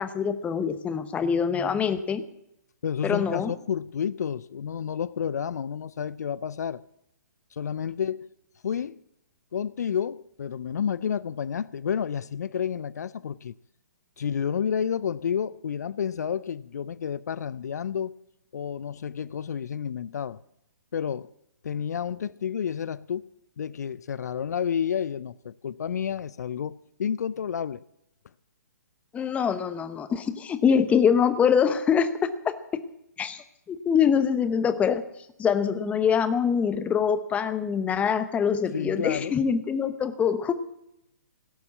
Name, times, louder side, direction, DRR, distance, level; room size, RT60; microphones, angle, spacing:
voice 1, 0.0-2.2 3.0-3.5 29.1-32.5 33.2-35.0 35.4-40.5, left 7 dB, 15° left, 0.9 m, -24 dB
voice 2, 2.8-6.8 7.5-8.3 8.6-9.0 9.5-13.5 14.2-18.1 18.5-20.4 20.9-21.3 21.6-23.3 23.6-26.7 27.0-27.8 38.7-39.4, left 8 dB, 65° left, 0.4 m, -30 dB
17.0 x 6.9 x 8.2 m
figure-of-eight pair, 125°, 10 cm